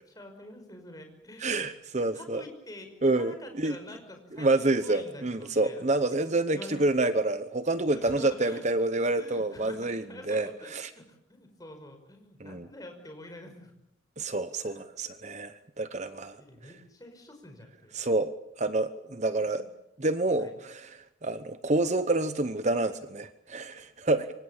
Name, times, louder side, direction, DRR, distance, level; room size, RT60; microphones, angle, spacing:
voice 1, 0.2-1.7 2.0-5.8 6.5-7.2 7.9-8.6 9.1-10.7 10.9-13.7 14.6-14.8 16.0-17.9 19.4-19.6 20.4-20.5, left 1 dB, 20° left, 5 dB, 5.4 m, -47 dB
voice 2, 1.4-2.4 3.0-3.8 4.4-10.9 12.4-12.7 14.2-16.4 17.9-19.6 20.0-24.3, right 2 dB, 35° right, 11 dB, 0.9 m, -28 dB
26.5 x 25.0 x 7.2 m, 0.81 s
head